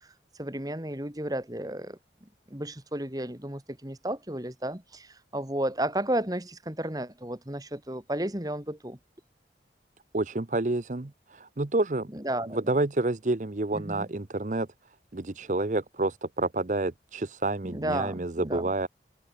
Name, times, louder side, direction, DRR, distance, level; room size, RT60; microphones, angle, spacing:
voice 1, 0.4-9.0 12.1-12.6 13.7-14.1 17.6-18.7, right 1 dB, 20° right, 2.7 m, -33 dB
voice 2, 10.1-12.1 12.5-14.7 15.1-18.9, right 2 dB, 45° right, 0.8 m, -29 dB
head